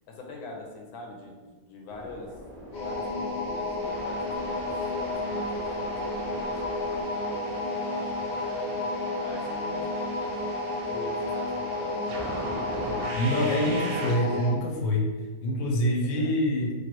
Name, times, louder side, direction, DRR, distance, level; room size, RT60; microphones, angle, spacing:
voice 1, 0.1-1.4 1.7-2.3 2.8-6.6 6.9-8.7 9.2-10.5 10.8-12.3 12.6-12.7 16.0-16.4, left 3 dB, 90° left, 0 dB, 1.1 m, -44 dB
sound 1, 1.9-7.0, right 1 dB, 65° right, 0.5 m, -44 dB
sound 2, 2.7-14.6, left 2 dB, 45° left, 0.6 m, -31 dB
sound 3, 3.8-14.2, right 2 dB, 85° right, 1.1 m, -41 dB
voice 2, 13.1-15.1 15.4-16.7, left 1 dB, 65° left, -1 dB, 0.9 m, -26 dB
3.0 x 2.4 x 3.0 m, 1.3 s
omnidirectional pair, 1.6 m